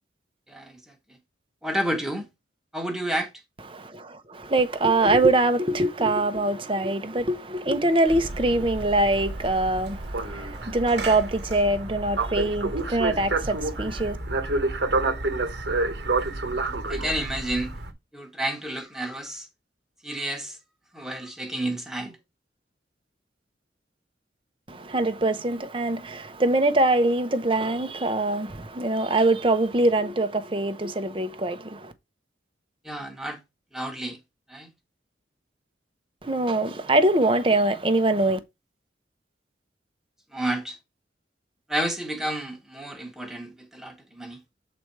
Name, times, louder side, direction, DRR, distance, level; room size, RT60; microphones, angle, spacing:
voice 1, 0.5-0.9 1.6-2.3 2.7-3.3 16.2-16.3 16.7-17.7 18.1-19.5 20.0-20.6 20.9-22.2 32.8-33.4 33.7-34.2 34.5-34.7 40.3-40.8 41.7-44.4, right 1 dB, 5° right, 1.4 m, -30 dB
voice 2, 3.7-14.2 24.7-31.9 36.2-38.4, right 2 dB, 30° right, 0.9 m, -23 dB
sound 1, 8.1-17.9, right 3 dB, 65° right, 1.2 m, -29 dB
8.1 x 4.3 x 4.7 m
head